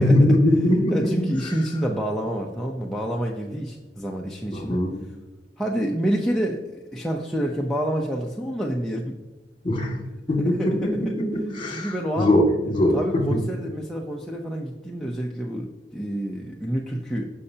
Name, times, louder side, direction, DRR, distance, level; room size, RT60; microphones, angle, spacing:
voice 1, 0.0-1.5 4.5-5.0 9.6-10.0 10.3-13.4, left 1 dB, 30° left, 1 dB, 2.1 m, -21 dB
voice 2, 0.9-4.8 5.6-9.1 10.4-10.9 11.7-12.3 12.9-17.3, right 1 dB, 5° left, -2 dB, 0.7 m, -28 dB
16.5 x 5.5 x 2.8 m, 1.2 s
head